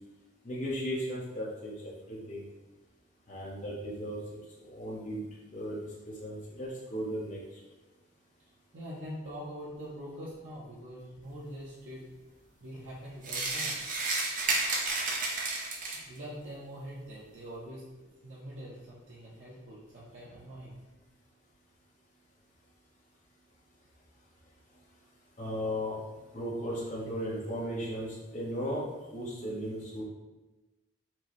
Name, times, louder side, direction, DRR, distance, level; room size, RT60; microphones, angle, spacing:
voice 1, 0.4-1.7 2.1-2.4 3.3-4.2 4.7-5.2 5.5-5.8 6.2-7.4 25.4-26.0 26.3-28.8 29.1-30.0, equal, 40° left, -7 dB, 0.9 m, -35 dB
voice 2, 8.7-12.1 12.6-13.8 15.9-17.9 18.2-20.8, equal, 80° right, -7 dB, 0.8 m, -44 dB
sound 1, 13.2-16.2, right 3 dB, 45° right, 0.6 m, -31 dB
4.5 x 2.8 x 3.1 m, 1.1 s
head